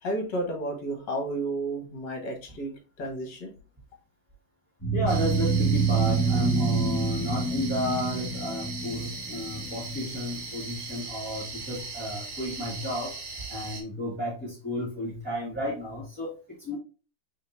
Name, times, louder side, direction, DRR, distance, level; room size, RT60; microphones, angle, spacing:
voice 1, 0.0-2.7 3.0-3.5, right 1 dB, 55° left, 2 dB, 2.0 m, -32 dB
sound 1, 4.8-9.9, right 4 dB, 15° left, 0.9 m, -26 dB
voice 2, 4.9-13.2 13.5-16.8, left 1 dB, 5° right, -7 dB, 1.8 m, -32 dB
sound 2, 5.1-13.8, right 4 dB, 45° right, 1.0 m, -39 dB
5.2 x 3.7 x 2.6 m, 0.35 s
omnidirectional pair, 2.4 m